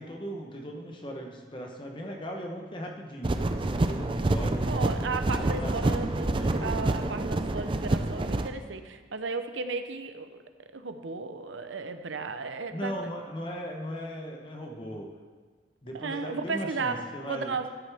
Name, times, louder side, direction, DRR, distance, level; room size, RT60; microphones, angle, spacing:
voice 1, 0.0-4.7 5.3-6.8 12.7-15.1 15.8-17.7, equal, 25° left, 1 dB, 1.0 m, -38 dB
sound 1, 3.2-8.5, right 2 dB, 25° right, 0.4 m, -27 dB
voice 2, 4.7-10.4 10.7-12.9 15.9-17.7, right 4 dB, 80° right, 8 dB, 0.7 m, -34 dB
13.0 x 10.5 x 3.5 m, 1.5 s
head